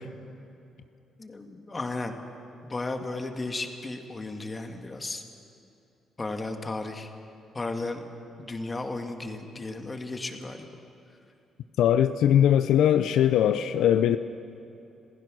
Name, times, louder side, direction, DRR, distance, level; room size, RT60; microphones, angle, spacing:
voice 1, 1.2-2.2 2.6-5.2 6.2-7.1 7.5-8.0 8.4-10.8, left 2 dB, 25° left, 5 dB, 1.9 m, -34 dB
voice 2, 11.8-14.2, left 10 dB, 80° left, 11 dB, 0.5 m, -21 dB
26.5 x 15.5 x 6.3 m, 2.7 s
cardioid pair, 90°, 0 cm